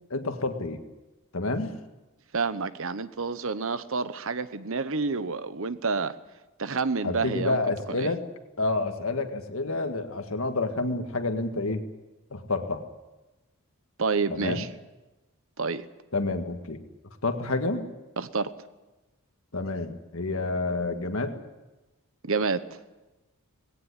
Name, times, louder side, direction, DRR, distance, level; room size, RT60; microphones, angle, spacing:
voice 1, 0.1-0.8 1.3-1.7 7.0-8.2 8.6-11.8 12.3-12.8 14.3-14.7 16.1-16.8 17.2-17.8 19.5-21.3, left 2 dB, 65° left, 7 dB, 1.8 m, -29 dB
voice 2, 2.3-6.1 6.6-7.6 8.0-8.1 14.0-14.7 15.6-15.8 18.2-18.5 22.2-22.6, right 4 dB, 65° right, 13 dB, 1.0 m, -28 dB
19.0 x 16.5 x 10.0 m, 1.1 s
head